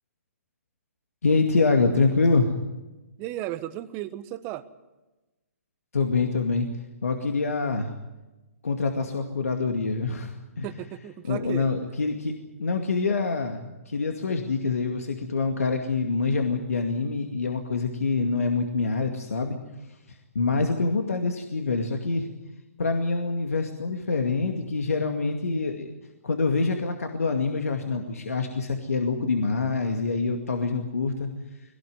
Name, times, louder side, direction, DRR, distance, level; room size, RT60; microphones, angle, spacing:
voice 1, 1.2-2.5 5.9-6.7 7.0-7.9 8.6-10.7 11.3-12.3 12.6-19.6 20.3-22.3 22.8-25.9 26.2-31.3, left 4 dB, 75° left, 4 dB, 2.3 m, -25 dB
voice 2, 3.2-4.6 10.6-11.7, right 14 dB, 30° right, 12 dB, 1.3 m, -34 dB
22.0 x 18.0 x 9.6 m, 1.1 s
figure-of-eight pair, 130°, 8 cm